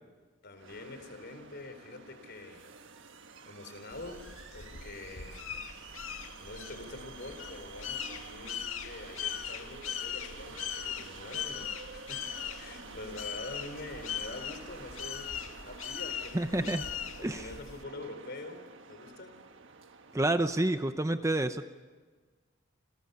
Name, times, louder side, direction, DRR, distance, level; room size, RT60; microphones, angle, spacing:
voice 1, 0.4-2.7 3.5-5.4 6.4-15.3 15.6-16.8 17.2-19.4, left 2 dB, 55° left, 8 dB, 4.2 m, -45 dB
sound 1, 0.6-20.4, right 4 dB, 65° right, 1.5 m, -49 dB
sound 2, 3.9-17.8, left 9 dB, 85° left, 1.8 m, -40 dB
voice 2, 16.3-16.8 17.2-17.5 20.1-21.6, right 1 dB, 15° right, 9 dB, 0.8 m, -29 dB
28.5 x 28.5 x 6.9 m, 1.4 s
head